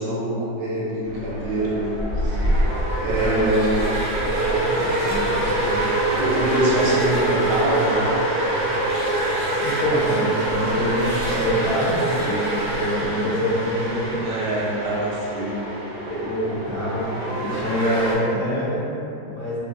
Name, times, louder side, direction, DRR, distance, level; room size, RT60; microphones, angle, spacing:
voice 1, 0.0-2.5 3.0-3.9 4.3-8.3 14.2-15.6, right 1 dB, 90° right, -6 dB, 1.2 m, -26 dB
sound 1, 1.0-18.1, right 1 dB, 60° right, 0.9 m, -24 dB
voice 2, 3.1-3.6 4.2-5.8 9.6-14.3 16.1-19.6, equal, 60° left, -7 dB, 0.9 m, -26 dB
2.8 x 2.5 x 2.5 m, 2.7 s
omnidirectional pair, 1.8 m